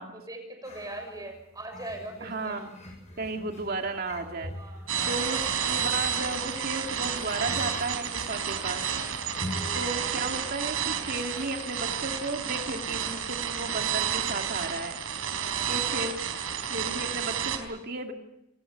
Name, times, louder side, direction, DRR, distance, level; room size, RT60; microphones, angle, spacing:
voice 1, 0.3-2.6 4.4-5.2 15.4-16.0, right 1 dB, 15° right, 5 dB, 6.2 m, -41 dB
sound 1, 0.6-16.6, left 1 dB, 35° left, 7.8 m, -45 dB
voice 2, 2.2-2.7 3.2-4.5 5.0-8.9 9.7-15.0 15.7-16.2 16.7-18.1, right 2 dB, 45° right, 4 dB, 2.5 m, -34 dB
sound 2, 4.9-17.6, right 8 dB, 80° right, 4.1 m, -31 dB
28.0 x 19.0 x 8.1 m, 0.87 s
head